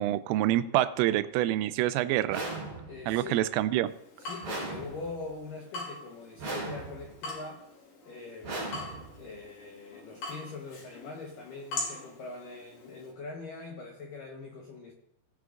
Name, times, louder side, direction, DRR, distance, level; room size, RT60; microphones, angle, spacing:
voice 1, 0.0-2.4 3.1-3.9, right 14 dB, 90° right, 13 dB, 3.1 m, -26 dB
sound 1, 2.3-3.2 4.4-5.3 6.4-7.2 8.4-9.3, right 2 dB, 40° right, 3.7 m, -38 dB
voice 2, 2.9-3.7 4.2-7.6 8.1-8.7 9.1-14.9, left 3 dB, 90° left, 1 dB, 1.9 m, -43 dB
Water tap faucet / Drip, 3.9-13.1, left 2 dB, 60° left, 4.4 m, -43 dB
18.0 x 9.5 x 2.5 m, 0.78 s
omnidirectional pair, 5.7 m